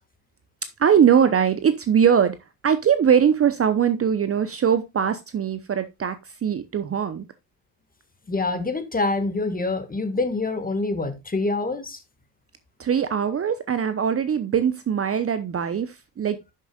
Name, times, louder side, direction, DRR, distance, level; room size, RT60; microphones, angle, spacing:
voice 1, 0.8-2.4 2.6-7.2 12.8-16.4, right 8 dB, 30° right, 0.8 m, -21 dB
voice 2, 8.3-12.0, left 3 dB, 20° left, 1.7 m, -26 dB
11.5 x 6.7 x 2.4 m
hypercardioid pair, 60°, 47 cm